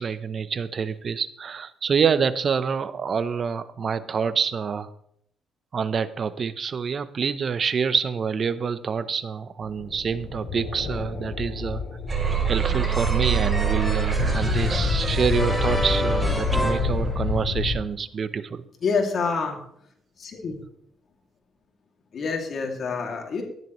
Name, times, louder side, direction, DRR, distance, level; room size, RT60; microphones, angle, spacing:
voice 1, 0.0-4.9 5.7-11.8 12.4-18.6, right 6 dB, 45° right, 14 dB, 0.7 m, -26 dB
sound 1, 9.6-17.8, left 4 dB, 80° left, 3.9 m, -28 dB
sound 2, 12.1-17.2, right 8 dB, 25° right, 3.9 m, -27 dB
sound 3, 12.3-17.7, right 1 dB, ahead, 1.8 m, -31 dB
voice 2, 18.8-19.6 20.2-20.6 22.1-23.4, left 4 dB, 55° left, 2 dB, 2.4 m, -27 dB
13.5 x 10.5 x 3.1 m, 0.68 s
cardioid pair, 90°, 0 cm